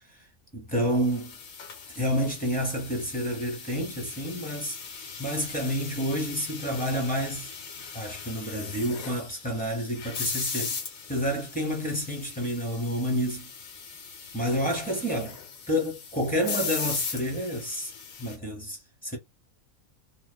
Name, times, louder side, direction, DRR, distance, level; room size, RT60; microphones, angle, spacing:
voice 1, 0.5-1.3 1.9-4.8 5.2-7.5 7.9-10.8 11.1-13.5 14.3-15.3 15.7-17.9 18.2-19.2, equal, 10° left, 0.6 m, -29 dB
sound 1, 0.9-18.4, left 5 dB, 70° left, 1.2 m, -39 dB
2.7 x 2.1 x 2.2 m
omnidirectional pair, 1.5 m